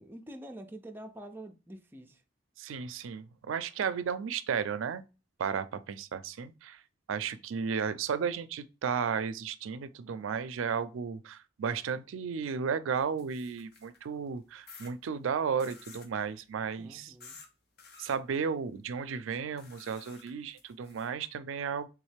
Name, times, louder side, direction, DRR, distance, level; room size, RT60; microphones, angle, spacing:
voice 1, 0.0-2.2 16.8-17.4, right 1 dB, 10° right, 0.4 m, -46 dB
voice 2, 2.6-5.0 5.4-6.8 7.1-17.1 18.0-21.9, right 6 dB, 85° right, 0.4 m, -34 dB
sound 1, 13.0-14.1 14.7-14.9 15.6-16.1 17.2-17.5 17.8-18.2 19.6-21.1, left 4 dB, 50° left, 0.8 m, -52 dB
3.6 x 3.1 x 3.2 m
head